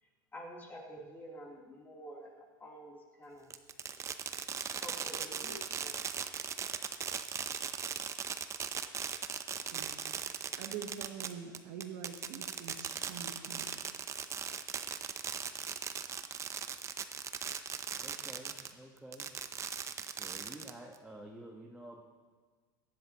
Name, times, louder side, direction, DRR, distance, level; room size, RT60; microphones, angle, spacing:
voice 1, 0.0-3.5 4.5-6.0, equal, 15° left, -2 dB, 3.3 m, -49 dB
Fireworks, 3.5-18.7 19.1-21.0, right 7 dB, 25° right, 0.7 m, -38 dB
voice 2, 9.7-10.2 10.6-13.7, right 7 dB, 60° right, 5 dB, 1.4 m, -45 dB
voice 3, 17.9-19.3 20.2-22.0, right 1 dB, 5° right, -1 dB, 1.3 m, -50 dB
17.5 x 12.0 x 3.0 m, 1.5 s
hypercardioid pair, 105°, 11 cm